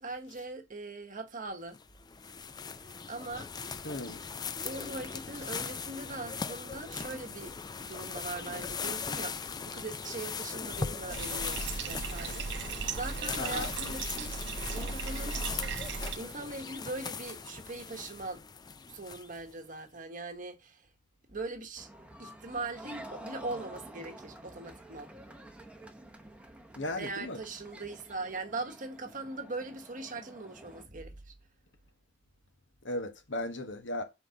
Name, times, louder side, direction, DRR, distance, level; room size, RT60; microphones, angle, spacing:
voice 1, 0.0-1.8 2.2-2.3 2.8-3.5 4.6-7.6 7.8-15.4 16.2-18.4 18.9-20.8 21.3-21.9 22.2-25.1 27.0-31.3, right 3 dB, 45° right, 1.1 m, -41 dB
sound 1, 1.7-19.5, left 5 dB, 20° left, 0.4 m, -39 dB
voice 2, 3.8-4.2 13.4-13.7 26.8-27.4 32.8-34.0, left 1 dB, 85° left, 1.3 m, -36 dB
Bathtub (filling or washing), 11.1-16.2, right 5 dB, 70° right, 0.6 m, -37 dB
sound 2, 21.8-30.8, right 1 dB, 5° right, 0.9 m, -49 dB
4.6 x 4.0 x 5.6 m
head